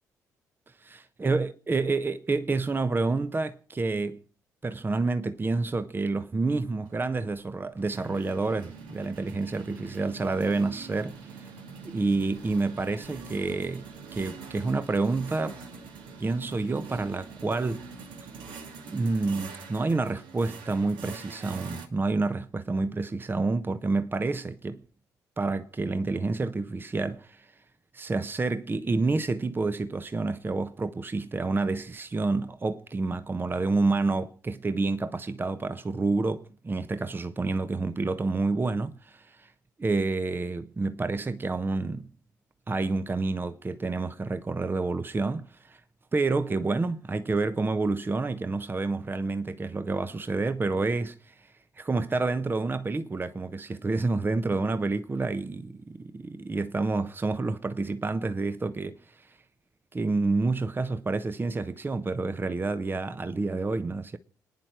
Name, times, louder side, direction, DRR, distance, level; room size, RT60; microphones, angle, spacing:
voice 1, 1.2-4.2 4.6-11.4 11.8-15.6 16.2-17.9 18.9-24.8 25.4-27.4 27.9-39.5 39.8-42.1 42.7-45.8 46.1-51.3 51.8-59.0 59.9-64.2, right 3 dB, 25° right, 1.0 m, -28 dB
sound 1, 6.9-21.9, right 5 dB, 60° right, 2.2 m, -44 dB
29.0 x 10.0 x 4.7 m
figure-of-eight pair, 45°, 9 cm